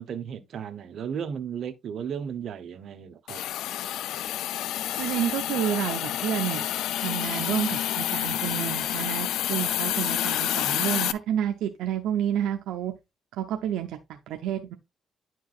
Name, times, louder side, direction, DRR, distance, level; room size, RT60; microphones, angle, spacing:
voice 1, 0.0-3.4, right 8 dB, 65° right, 0.9 m, -35 dB
Hiss, 3.3-11.1, left 12 dB, 85° left, 0.4 m, -29 dB
voice 2, 5.0-6.7 7.0-12.9 13.4-14.7, right 10 dB, 90° right, 0.6 m, -29 dB
sound 1, 8.3-10.6, left 3 dB, 55° left, 3.9 m, -49 dB
10.5 x 4.6 x 2.4 m
cardioid pair, 90°, 0 cm